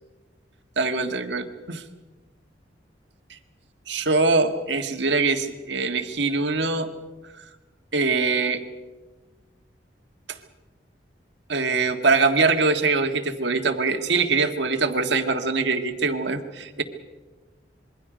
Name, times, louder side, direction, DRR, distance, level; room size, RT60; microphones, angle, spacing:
voice 1, 0.8-1.8 3.3-3.4 3.9-6.9 7.9-8.6 10.3-10.4 11.5-16.8, right 3 dB, 70° right, 6 dB, 1.7 m, -23 dB
26.5 x 22.5 x 5.1 m, 1.2 s
head